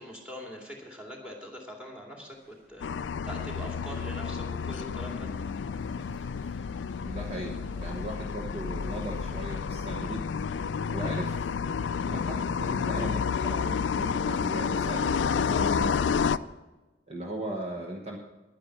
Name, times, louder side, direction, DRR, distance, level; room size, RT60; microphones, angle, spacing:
voice 1, 0.0-5.3, equal, 5° right, 0 dB, 2.3 m, -43 dB
sound 1, 2.2-14.0, equal, 55° right, 5.5 m, -60 dB
sound 2, 2.8-16.4, left 6 dB, 75° left, 0.4 m, -30 dB
voice 2, 7.0-10.2 10.9-11.5 12.0-16.3 17.1-18.2, right 1 dB, 35° right, 0 dB, 1.1 m, -38 dB
10.5 x 9.9 x 7.1 m, 1.1 s
head